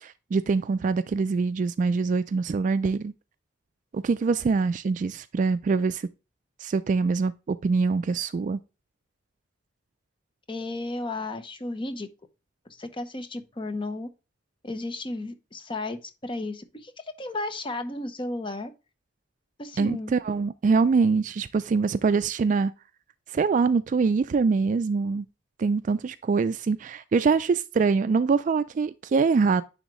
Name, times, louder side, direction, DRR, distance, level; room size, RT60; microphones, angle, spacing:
voice 1, 0.0-3.1 3.9-6.1 6.6-8.6 19.8-22.7 23.3-25.2 25.6-29.6, right 4 dB, 45° right, 0.3 m, -24 dB
voice 2, 10.5-12.1 12.8-14.1 14.6-18.7 19.6-20.1, left 2 dB, 25° left, 0.8 m, -33 dB
9.9 x 3.6 x 3.0 m
head